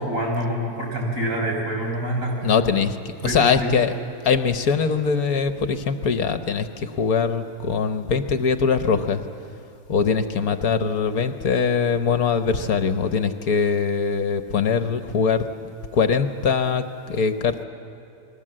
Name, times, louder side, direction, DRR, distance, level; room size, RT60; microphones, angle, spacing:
voice 1, 0.0-2.3 3.2-3.7, right 1 dB, 55° right, -2 dB, 6.2 m, -26 dB
voice 2, 2.4-2.9 3.2-3.9 4.2-9.2 9.9-15.4 15.9-17.6, left 5 dB, 65° left, 9 dB, 1.4 m, -22 dB
29.5 x 21.0 x 7.6 m, 2.5 s
omnidirectional pair, 1.7 m